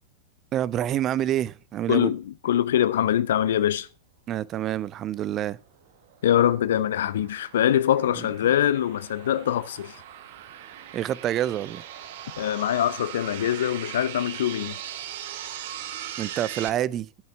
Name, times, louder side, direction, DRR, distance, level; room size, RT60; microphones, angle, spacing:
voice 1, 0.5-2.1 4.3-5.6 10.9-11.8 16.2-17.1, right 11 dB, 30° right, 0.5 m, -27 dB
voice 2, 1.9-3.9 6.2-10.0 12.4-14.8, left 11 dB, 60° left, 0.6 m, -23 dB
sound 1, 5.9-16.7, right 11 dB, 55° right, 1.1 m, -40 dB
12.0 x 6.5 x 5.7 m
figure-of-eight pair, 90°, 0 cm